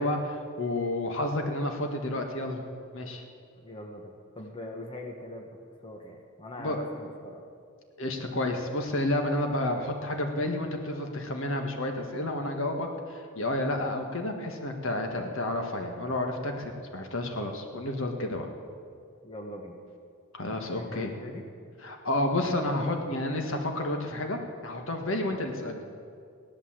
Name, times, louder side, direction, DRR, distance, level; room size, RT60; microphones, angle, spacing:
voice 1, 0.0-2.6 2.9-3.2 6.6-6.8 8.0-18.5 20.3-21.1 21.8-25.8, left 1 dB, 60° left, 3 dB, 1.7 m, -30 dB
voice 2, 3.6-7.4 17.7-17.8 19.2-19.8 20.8-21.4 25.3-25.5, left 1 dB, 25° left, 1 dB, 1.2 m, -42 dB
16.5 x 11.5 x 7.5 m, 2.3 s
head